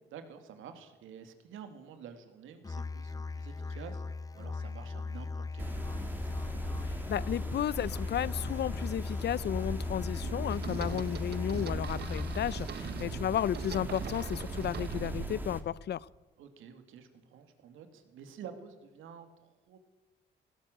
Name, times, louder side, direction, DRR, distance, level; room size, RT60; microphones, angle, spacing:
voice 1, 0.1-4.0 4.3-6.2 12.8-13.2 16.4-19.8, right 7 dB, 85° right, 8 dB, 2.4 m, -50 dB
Musical instrument, 2.6-12.6, left 4 dB, 20° left, 0.7 m, -38 dB
sound 1, 5.6-15.6, right 1 dB, 10° right, 2.7 m, -39 dB
voice 2, 6.9-16.1, left 10 dB, 60° left, 21 dB, 0.7 m, -33 dB
sound 2, 10.2-15.4, right 9 dB, 55° right, 0.7 m, -42 dB
19.5 x 17.0 x 7.8 m, 1.2 s
cardioid pair, 90°, 20 cm